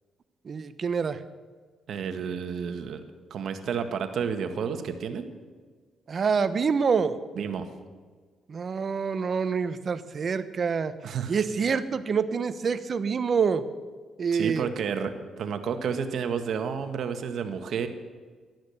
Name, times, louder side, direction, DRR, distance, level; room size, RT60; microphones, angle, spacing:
voice 1, 0.4-1.2 6.1-7.2 8.5-10.9 11.3-13.6 14.2-14.7, right 6 dB, 45° right, 13 dB, 1.0 m, -26 dB
voice 2, 1.9-3.0 3.3-5.3 7.3-7.7 11.0-11.3 14.3-17.9, right 6 dB, 65° right, 8 dB, 1.6 m, -31 dB
15.5 x 12.0 x 7.1 m, 1.5 s
cardioid pair, 90°, 0 cm